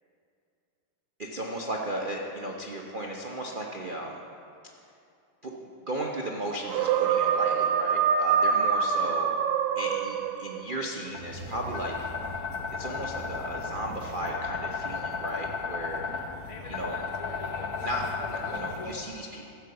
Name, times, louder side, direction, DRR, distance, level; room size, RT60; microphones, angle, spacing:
voice 1, 1.2-4.2 5.4-9.3 9.7-12.1 12.8-16.1 16.7-17.0 17.8-19.5, right 1 dB, 50° right, -1 dB, 0.6 m, -35 dB
sound 1, 6.6-10.7, right 7 dB, 75° right, 1.2 m, -25 dB
sound 2, 11.1-18.9, left 4 dB, 80° left, 2.2 m, -34 dB
13.5 x 7.1 x 7.9 m, 2.5 s
omnidirectional pair, 2.3 m